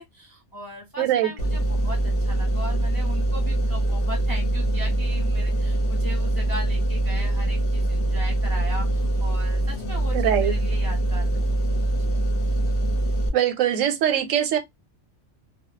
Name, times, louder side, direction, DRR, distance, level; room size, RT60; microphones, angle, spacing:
voice 1, 0.0-11.5 11.7-12.1, left 1 dB, 30° left, 0.4 m, -38 dB
voice 2, 1.0-1.3 10.1-10.5 13.3-14.6, right 10 dB, 80° right, 1.0 m, -22 dB
sound 1, 1.4-13.3, right 1 dB, 55° left, 0.8 m, -23 dB
2.2 x 2.0 x 3.0 m
omnidirectional pair, 1.3 m